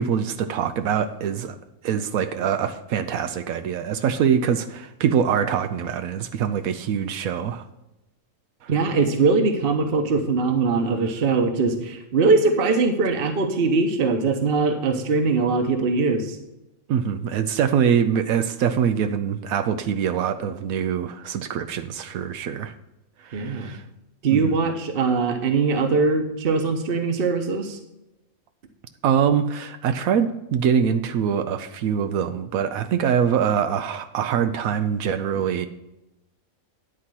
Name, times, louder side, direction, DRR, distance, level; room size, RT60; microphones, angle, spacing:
voice 1, 0.0-1.6 1.8-7.6 8.6-8.7 16.9-22.7 23.2-23.8 24.3-24.6 29.0-35.7, right 8 dB, 85° right, 9 dB, 1.1 m, -24 dB
voice 2, 8.7-16.4 23.3-23.7 24.2-27.8, right 4 dB, 45° right, 5 dB, 1.0 m, -21 dB
9.9 x 4.2 x 7.6 m, 0.92 s
omnidirectional pair, 1.4 m